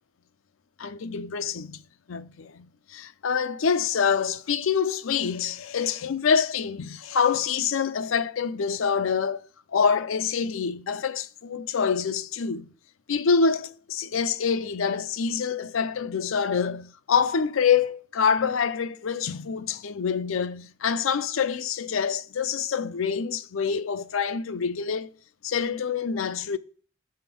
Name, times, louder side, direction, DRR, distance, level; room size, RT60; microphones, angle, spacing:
voice 1, 0.8-1.8 2.1-9.5 9.7-12.7 13.1-25.1 25.4-26.6, left 6 dB, 85° left, 0.5 m, -26 dB
7.6 x 3.6 x 6.1 m
head